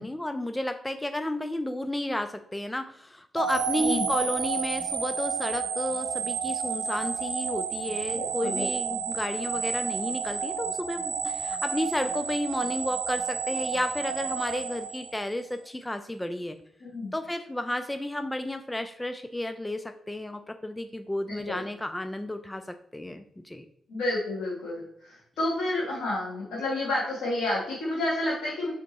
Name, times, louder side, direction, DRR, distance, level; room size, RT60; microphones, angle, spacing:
voice 1, 0.0-16.6 17.1-23.7, left 1 dB, 15° left, 8 dB, 0.4 m, -32 dB
sound 1, 3.4-15.5, right 6 dB, 85° right, 0.6 m, -31 dB
voice 2, 8.2-8.6 16.9-17.1 21.3-21.6 23.9-24.8 25.1-28.7, left 1 dB, 75° left, -7 dB, 1.4 m, -30 dB
3.7 x 3.5 x 4.2 m, 0.69 s
supercardioid pair, 45°, 0 cm